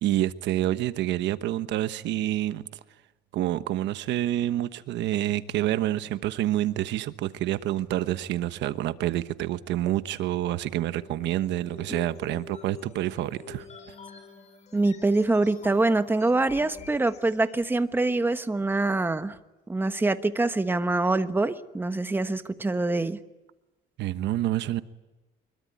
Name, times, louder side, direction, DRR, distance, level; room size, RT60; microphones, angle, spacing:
voice 1, 0.0-2.6 3.3-13.7 24.0-24.8, right 13 dB, 80° right, 1.2 m, -28 dB
sound 1, 10.7-17.8, left 7 dB, 40° left, 7.4 m, -47 dB
voice 2, 14.7-19.3 19.7-23.2, right 2 dB, 10° right, 1.2 m, -25 dB
25.0 x 22.0 x 9.3 m
cardioid pair, 140°, 18 cm